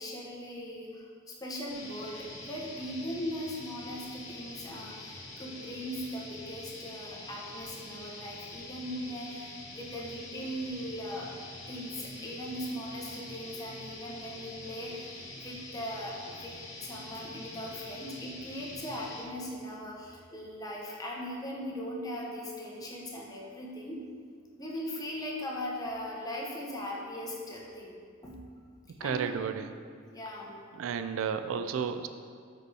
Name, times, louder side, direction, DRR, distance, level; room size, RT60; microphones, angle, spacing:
voice 1, 0.0-11.3 11.7-24.1 24.6-28.0 28.2-28.4 29.0-29.4 30.1-30.5, equal, 20° left, -3 dB, 0.9 m, -39 dB
sound 1, 1.7-19.2, left 2 dB, 70° left, 1.2 m, -45 dB
voice 2, 29.0-29.7 30.7-32.1, right 7 dB, 75° right, 9 dB, 0.3 m, -32 dB
4.9 x 4.7 x 4.8 m, 2.1 s
head